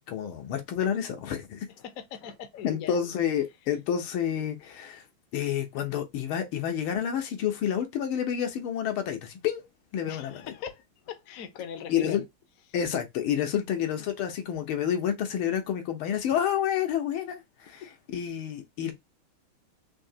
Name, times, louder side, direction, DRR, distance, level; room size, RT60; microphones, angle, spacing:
voice 1, 0.0-1.7 2.6-5.0 5.3-9.6 9.9-10.4 11.9-12.2 12.7-18.9, left 9 dB, 80° left, 1.8 m, -29 dB
voice 2, 1.8-3.0 10.1-12.2 13.5-13.6 17.8-17.9, left 8 dB, 60° left, 0.9 m, -40 dB
4.3 x 2.8 x 2.7 m
omnidirectional pair, 2.3 m